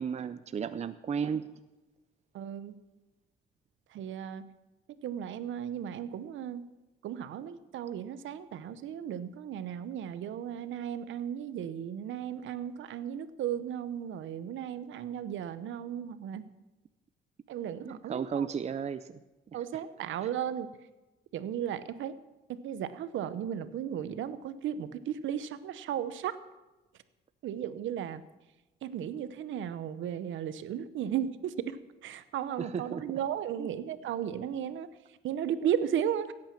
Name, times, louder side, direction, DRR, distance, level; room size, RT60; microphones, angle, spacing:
voice 1, 0.0-1.5 17.8-19.2 19.5-19.8 32.6-33.0 33.6-33.7, right 7 dB, 35° right, 12 dB, 0.5 m, -34 dB
voice 2, 2.3-2.8 3.9-4.5 5.0-6.6 7.0-16.4 17.5-18.5 19.5-20.7 21.3-22.1 22.5-26.4 27.4-28.2 28.8-34.9 35.2-36.3, right 9 dB, 75° right, 14 dB, 0.9 m, -35 dB
16.5 x 8.9 x 6.0 m, 1.1 s
cardioid pair, 90°, 20 cm